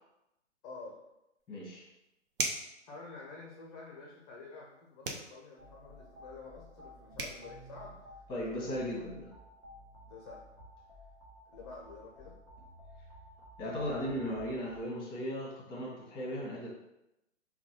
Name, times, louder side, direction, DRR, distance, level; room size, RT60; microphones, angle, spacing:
voice 1, 0.6-1.0 2.9-9.1 10.1-10.4 11.5-12.4, left 3 dB, 30° left, -2 dB, 0.6 m, -49 dB
sound 1, 1.4-1.5 2.3-2.8 5.0-5.3 6.8-6.9 7.2-7.4, right 3 dB, 50° right, 0.7 m, -35 dB
voice 2, 1.5-1.9 8.3-9.3 13.6-16.7, equal, 15° left, -3 dB, 1.2 m, -37 dB
sound 2, 5.6-14.8, left 1 dB, 30° right, 1.3 m, -53 dB
5.3 x 2.3 x 2.8 m, 0.87 s
figure-of-eight pair, 120°, 36 cm